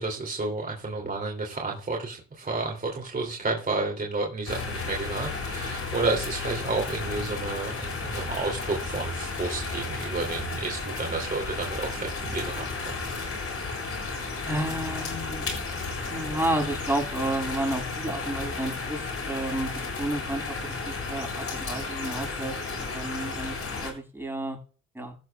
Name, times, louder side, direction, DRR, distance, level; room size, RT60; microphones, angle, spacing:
voice 1, 0.0-13.0, right 3 dB, 30° right, 1 dB, 2.9 m, -31 dB
sound 1, 4.5-23.9, left 4 dB, 50° left, 6.8 m, -33 dB
voice 2, 14.5-15.5 16.1-20.6 20.8-23.6 23.8-24.6 24.9-25.2, right 1 dB, 5° right, 2 dB, 7.2 m, -31 dB
16.5 x 12.0 x 2.3 m, 0.39 s
cardioid pair, 90°, 30 cm